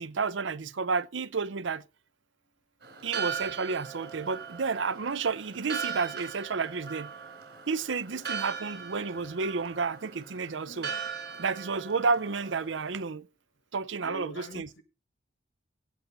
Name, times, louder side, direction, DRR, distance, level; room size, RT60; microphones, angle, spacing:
voice 1, 0.0-1.8 3.0-7.1 7.7-10.9 11.4-13.3 13.7-14.7, right 4 dB, 80° right, 0.6 m, -31 dB
Church bell, 2.8-13.0, right 6 dB, 55° right, 4.3 m, -39 dB
voice 2, 10.7-11.0 14.0-14.8, equal, 85° left, 2.0 m, -43 dB
16.5 x 7.1 x 4.1 m
head